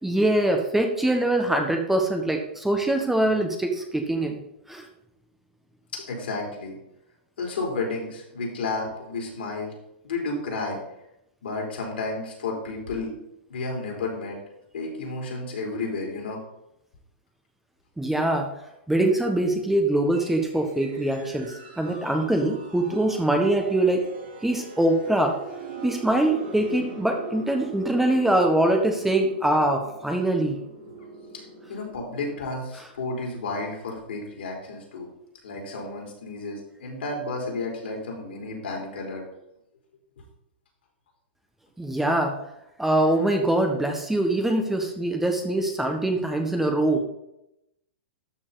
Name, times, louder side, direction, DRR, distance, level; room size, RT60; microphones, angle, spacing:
voice 1, 0.0-4.4 4.7-4.8 18.0-18.5 18.9-24.0 24.4-25.4 25.8-30.6 41.8-42.4 42.8-47.0, right 1 dB, 5° right, 4 dB, 1.3 m, -23 dB
voice 2, 5.9-6.8 7.4-9.7 10.0-10.8 11.4-13.1 13.5-14.4 14.7-16.4 31.3-31.4 31.7-35.1 35.4-39.2, left 3 dB, 70° left, -1 dB, 4.0 m, -32 dB
sound 1, 20.1-32.4, right 4 dB, 45° right, 3.6 m, -42 dB
13.0 x 6.1 x 4.1 m, 0.84 s
hypercardioid pair, 110°, 6 cm